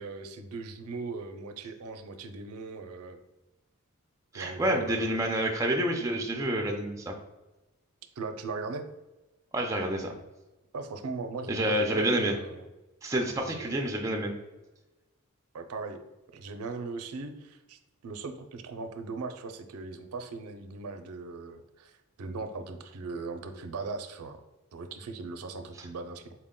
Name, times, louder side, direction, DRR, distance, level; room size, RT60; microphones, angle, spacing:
voice 1, 0.0-3.2 4.3-5.3 8.2-8.9 10.7-12.7 13.4-13.7 15.5-16.0 16.3-24.4 24.7-26.3, right 3 dB, 85° right, 7 dB, 0.5 m, -39 dB
voice 2, 4.3-7.1 9.5-10.1 11.5-12.4 13.0-14.3, right 1 dB, 15° right, 1 dB, 0.4 m, -28 dB
4.3 x 2.1 x 3.6 m, 1.1 s
head